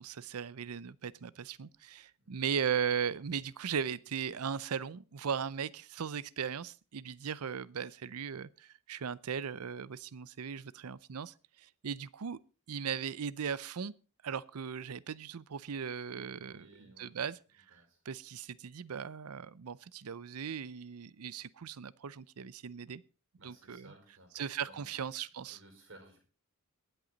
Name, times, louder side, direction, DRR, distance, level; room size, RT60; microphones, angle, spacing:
voice 1, 0.0-12.4 12.7-13.9 14.2-23.0 23.4-23.9 24.3-25.6, right 7 dB, 80° right, 0.6 m, -38 dB
voice 2, 16.4-17.2 17.7-18.0 23.4-25.0 25.5-26.2, right 2 dB, 60° right, 5.0 m, -58 dB
21.5 x 8.1 x 3.9 m
head